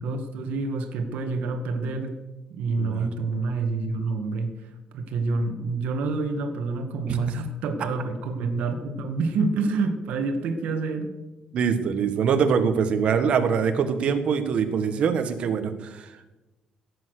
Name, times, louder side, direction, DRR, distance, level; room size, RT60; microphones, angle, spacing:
voice 1, 0.0-2.2 2.5-4.6 4.9-11.1, right 3 dB, 75° right, 5 dB, 1.8 m, -27 dB
voice 2, 2.8-3.1 7.1-7.2 11.5-16.3, right 6 dB, 50° right, 7 dB, 1.6 m, -24 dB
16.0 x 8.4 x 6.6 m, 1.1 s
cardioid pair, 165°, 3 cm